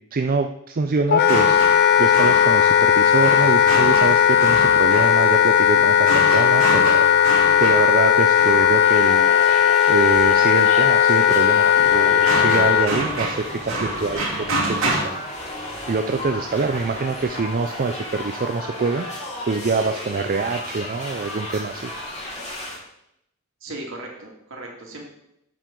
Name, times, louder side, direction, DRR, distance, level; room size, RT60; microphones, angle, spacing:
voice 1, 0.1-9.5 9.9-15.2 15.9-21.9 22.3-22.4, right 4 dB, 45° right, 6 dB, 0.5 m, -25 dB
Wind instrument woodwind instrument, 1.1-12.9, left 9 dB, 50° left, 0.4 m, -16 dB
sound 1, 1.2-9.0 11.8-15.0, right 2 dB, 85° right, 2.5 m, -28 dB
sound 2, 8.8-22.8, left 1 dB, 35° left, 3.0 m, -34 dB
voice 2, 23.6-25.0, right 2 dB, 70° right, -1 dB, 2.4 m, -36 dB
10.0 x 7.4 x 3.8 m, 0.79 s
head